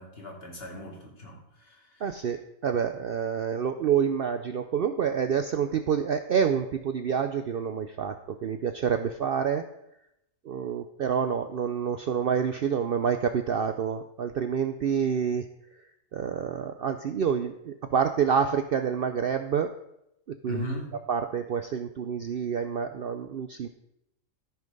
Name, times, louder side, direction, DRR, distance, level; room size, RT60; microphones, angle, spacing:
voice 1, 0.0-2.1 20.5-20.9, left 1 dB, 45° left, 0 dB, 2.5 m, -38 dB
voice 2, 2.0-9.6 10.5-15.5 16.1-19.7 20.3-20.7 20.9-23.7, right 7 dB, 60° right, 8 dB, 0.6 m, -28 dB
13.0 x 5.8 x 5.3 m, 0.82 s
omnidirectional pair, 1.4 m